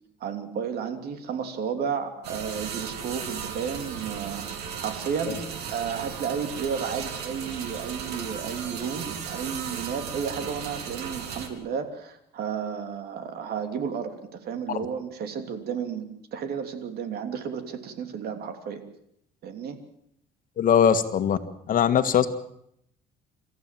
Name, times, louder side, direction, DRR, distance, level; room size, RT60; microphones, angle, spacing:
voice 1, 0.2-5.4 5.7-18.8 19.4-19.8, right 7 dB, 65° right, 7 dB, 3.1 m, -32 dB
sound 1, 2.2-11.5, right 7 dB, 90° right, 3.1 m, -36 dB
voice 2, 20.6-21.4 21.7-22.3, left 8 dB, 55° left, 9 dB, 1.8 m, -21 dB
27.0 x 14.5 x 7.6 m, 0.74 s
cardioid pair, 110°, 17 cm